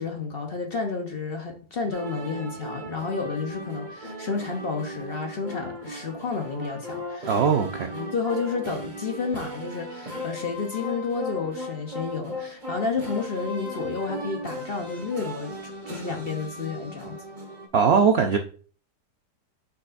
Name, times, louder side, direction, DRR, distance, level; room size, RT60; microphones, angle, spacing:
voice 1, 0.0-7.3 7.9-17.2, left 4 dB, 45° left, 0.9 m, -31 dB
sound 1, 1.9-17.7, equal, 30° right, 1.5 m, -37 dB
voice 2, 7.3-7.9 17.7-18.4, right 6 dB, 75° right, 0.5 m, -20 dB
6.6 x 5.5 x 2.6 m
omnidirectional pair, 1.8 m